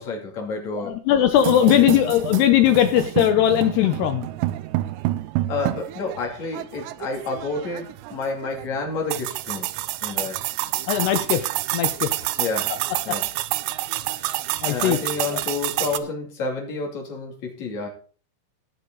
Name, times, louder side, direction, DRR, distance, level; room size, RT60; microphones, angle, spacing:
voice 1, 0.0-1.2 1.6-2.0 5.5-9.7 10.0-10.4 12.4-12.7 13.1-13.3 14.7-17.9, left 3 dB, 40° left, 0 dB, 3.4 m, -30 dB
voice 2, 0.7-4.3 10.9-11.5 11.7-12.1 14.6-15.0, left 11 dB, 80° left, 7 dB, 2.4 m, -19 dB
sound 1, 1.4-16.0, right 16 dB, 85° right, 2.5 m, -28 dB
19.0 x 6.6 x 3.9 m, 0.41 s
omnidirectional pair, 5.6 m